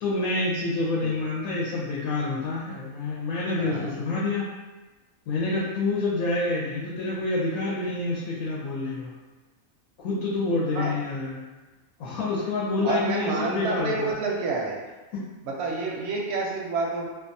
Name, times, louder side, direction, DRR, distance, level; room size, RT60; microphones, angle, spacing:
voice 1, 0.0-4.5 5.3-9.1 10.0-11.4 12.0-14.1 15.1-15.2, left 3 dB, 85° left, -6 dB, 1.0 m, -27 dB
voice 2, 3.6-3.9 10.7-11.0 12.8-14.8 15.4-17.1, right 3 dB, 65° right, -2 dB, 0.7 m, -29 dB
2.5 x 2.3 x 2.5 m, 1.2 s
omnidirectional pair, 1.5 m